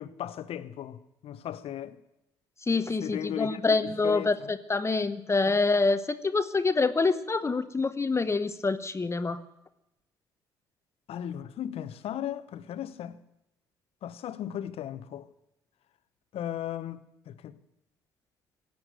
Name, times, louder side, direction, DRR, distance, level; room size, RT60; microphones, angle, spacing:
voice 1, 0.0-2.0 3.0-4.5 11.1-13.2 14.0-15.3 16.3-17.6, left 10 dB, 60° left, 1.0 m, -37 dB
voice 2, 2.7-9.4, left 3 dB, 25° left, 1.0 m, -26 dB
17.0 x 8.7 x 9.2 m
hypercardioid pair, 55°, 11 cm